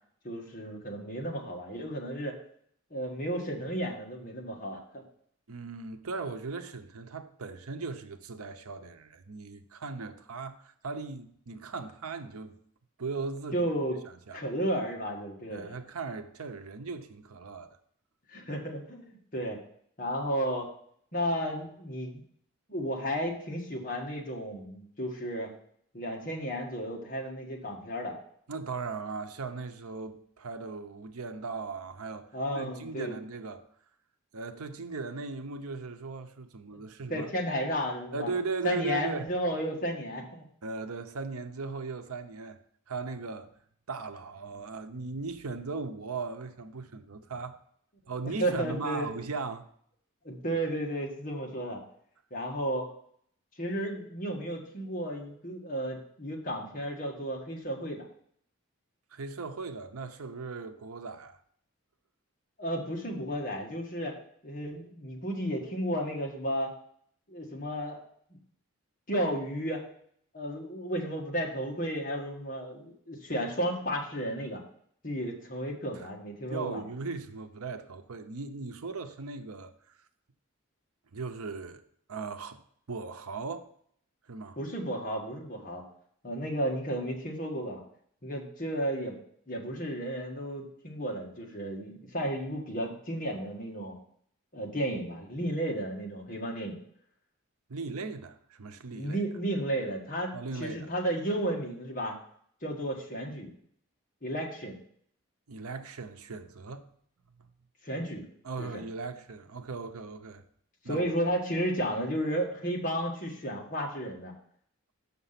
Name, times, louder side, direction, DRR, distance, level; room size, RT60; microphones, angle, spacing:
voice 1, 0.2-2.3 2.9-5.0 13.5-14.0 14.3-15.7 18.3-19.6 20.0-20.7 21.1-22.2 22.7-25.5 25.9-28.2 32.3-33.2 36.7-36.8 37.1-38.3 38.6-40.4 48.2-49.1 50.2-51.8 52.3-52.9 53.6-58.1 62.6-64.2 64.4-66.7 67.3-68.0 69.1-69.8 70.3-74.6 75.0-76.8 84.6-85.8 86.2-87.8 88.2-89.2 89.5-94.0 94.5-96.8 98.9-102.1 102.6-103.5 104.2-104.8 107.8-108.2 108.6-108.8 110.9-114.3, equal, 40° left, 1.6 m, -33 dB
voice 2, 5.5-12.6 13.0-13.7 14.3-14.4 15.5-17.7 28.5-33.6 34.3-37.3 38.1-39.3 40.6-42.6 42.9-43.5 43.9-47.6 48.1-49.7 59.1-61.4 76.5-79.7 81.1-81.8 82.1-82.6 82.9-83.7 84.3-84.6 97.7-99.2 100.3-100.9 105.5-106.9 108.4-110.4 110.8-111.0, right 4 dB, 90° right, 0.7 m, -38 dB
6.8 x 5.9 x 5.8 m
head